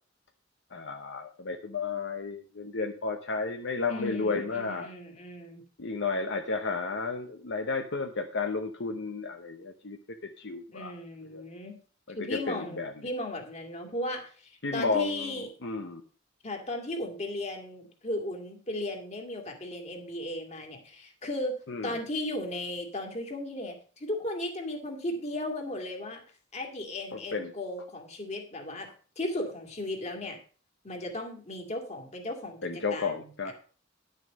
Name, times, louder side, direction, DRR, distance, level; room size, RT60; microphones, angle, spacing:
voice 1, 0.7-4.9 5.8-10.9 11.3-11.4 12.1-12.9 14.6-16.0 21.7-22.0 27.1-27.5 32.6-33.5, left 4 dB, 65° left, 4 dB, 0.9 m, -32 dB
voice 2, 3.9-5.6 10.7-11.8 12.2-15.5 16.4-26.2 26.5-28.9 29.2-30.4 30.8-33.5, left 1 dB, 35° left, 3 dB, 2.4 m, -36 dB
11.0 x 6.6 x 5.3 m, 0.40 s
head